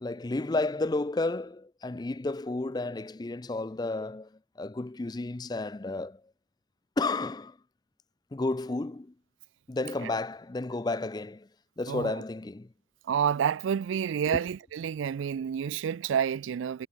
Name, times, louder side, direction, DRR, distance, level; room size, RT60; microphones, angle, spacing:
voice 1, 0.0-6.2 7.0-7.6 8.3-9.1 9.7-11.5 11.8-12.7 14.3-14.4, left 2 dB, 20° left, 0.4 m, -32 dB
voice 2, 13.1-16.9, right 8 dB, 85° right, 0.3 m, -29 dB
head